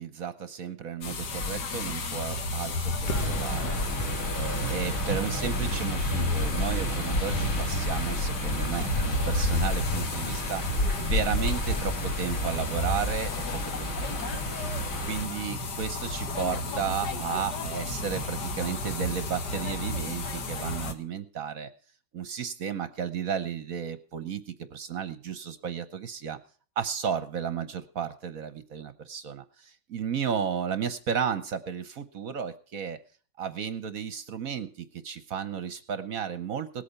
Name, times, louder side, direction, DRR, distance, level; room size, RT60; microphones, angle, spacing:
voice 1, 0.0-13.4 13.8-14.4 15.0-21.7 22.1-26.4 26.8-33.0 33.4-36.8, right 7 dB, 55° right, 12 dB, 1.1 m, -33 dB
sound 1, 1.0-20.9, left 2 dB, 60° left, 1.9 m, -31 dB
sound 2, 3.1-15.3, right 1 dB, 40° left, 3.2 m, -34 dB
18.5 x 8.4 x 5.5 m, 0.41 s
omnidirectional pair, 2.1 m